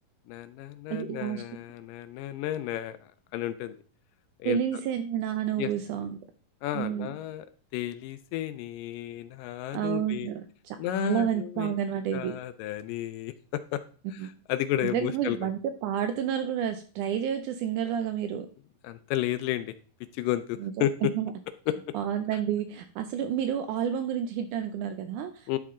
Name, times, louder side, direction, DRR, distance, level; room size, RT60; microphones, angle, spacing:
voice 1, 0.3-3.8 4.4-4.6 5.6-5.7 6.6-7.5 7.7-10.3 10.8-11.8 12.1-13.8 14.1-15.5 18.8-19.7 20.1-21.1 21.7-21.8 25.5-25.6, left 13 dB, 80° left, 12 dB, 2.1 m, -32 dB
voice 2, 0.9-1.4 4.5-6.2 6.7-7.1 9.7-12.4 14.1-14.3 14.8-18.5 20.6-21.3 21.9-25.6, right 9 dB, 80° right, 9 dB, 1.8 m, -30 dB
11.5 x 4.6 x 3.6 m, 0.39 s
omnidirectional pair, 4.0 m